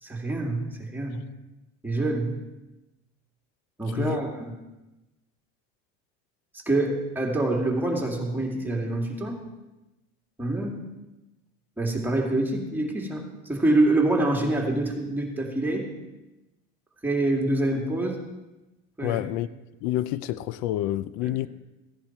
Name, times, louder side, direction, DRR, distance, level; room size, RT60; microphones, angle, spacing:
voice 1, 0.0-1.2 1.8-2.4 3.8-4.5 6.7-9.4 10.4-10.8 11.8-13.2 13.5-15.9 17.0-18.2 19.0-19.2 21.2-21.3, right 2 dB, 5° right, 2.4 m, -26 dB
voice 2, 19.0-19.5 19.8-21.5, left 14 dB, 80° left, 0.6 m, -28 dB
16.0 x 10.5 x 4.5 m
cardioid pair, 130°, 30 cm